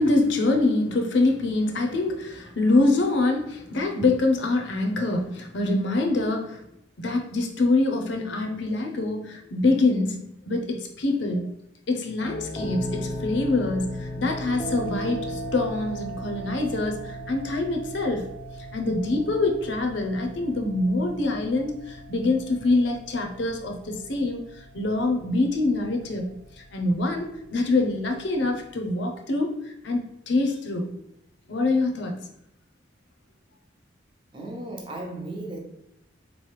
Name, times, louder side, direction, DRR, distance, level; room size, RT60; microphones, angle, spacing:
voice 1, 0.0-6.6 7.0-11.5 11.9-18.3 18.7-24.4 24.7-26.3 26.7-30.9 31.5-32.3, left 2 dB, 60° left, 3 dB, 0.6 m, -25 dB
sound 1, 12.2-28.7, equal, 15° left, 0.5 m, -37 dB
voice 2, 34.3-35.6, right 1 dB, 25° right, 0 dB, 0.7 m, -35 dB
3.8 x 3.0 x 3.3 m, 0.82 s
head